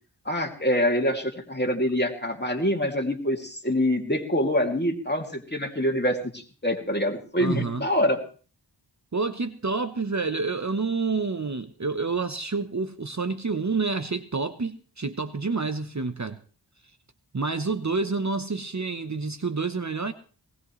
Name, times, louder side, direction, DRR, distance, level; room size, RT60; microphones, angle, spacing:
voice 1, 0.2-8.2, equal, 25° left, 2.7 m, -25 dB
voice 2, 7.4-7.8 9.1-16.4 17.3-20.1, right 4 dB, 40° right, 1.0 m, -28 dB
19.5 x 18.0 x 3.2 m
wide cardioid pair, 45°, 43 cm